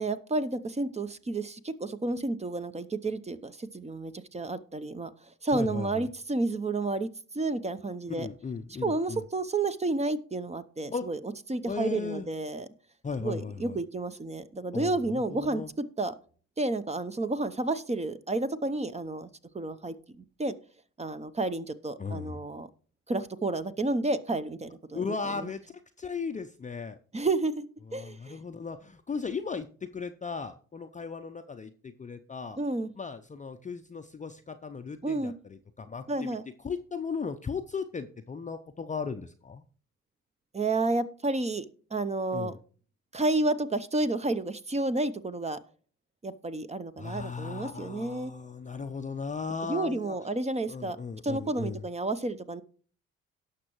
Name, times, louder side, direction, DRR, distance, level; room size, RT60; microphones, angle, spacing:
voice 1, 0.0-7.1 7.3-8.3 8.8-11.2 11.5-12.7 13.2-16.1 16.6-19.3 19.5-20.6 21.0-22.7 23.1-25.5 27.1-28.4 32.6-32.9 35.0-35.3 36.1-36.4 40.5-41.7 41.9-42.6 43.1-45.6 46.2-48.3 49.6-51.0 51.2-52.6, right 2 dB, 20° right, 13 dB, 0.7 m, -31 dB
voice 2, 5.5-6.1 8.2-9.2 10.9-11.1 11.7-12.3 13.0-13.8 14.7-15.7 22.0-22.5 24.9-25.6 26.0-27.0 27.9-32.6 33.0-36.3 36.6-39.6 42.3-42.6 47.0-50.2 50.7-51.8, left 5 dB, 20° left, 7 dB, 0.6 m, -36 dB
17.5 x 6.0 x 3.0 m, 0.43 s
figure-of-eight pair, 45°, 36 cm